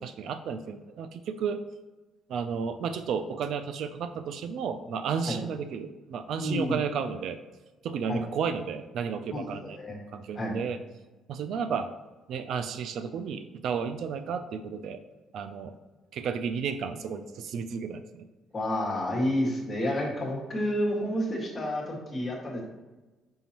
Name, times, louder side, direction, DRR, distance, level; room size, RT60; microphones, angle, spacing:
voice 1, 0.0-1.6 2.3-7.4 7.8-9.8 10.1-10.8 11.3-11.9 12.3-15.0 15.3-15.7 16.1-18.3, right 6 dB, 65° right, 10 dB, 0.3 m, -32 dB
voice 2, 6.4-6.8 8.1-8.2 9.3-10.0 10.3-10.6 18.5-22.6, left 1 dB, 25° left, -3 dB, 1.7 m, -30 dB
6.0 x 5.5 x 2.9 m, 1.2 s
cardioid pair, 140°, 0 cm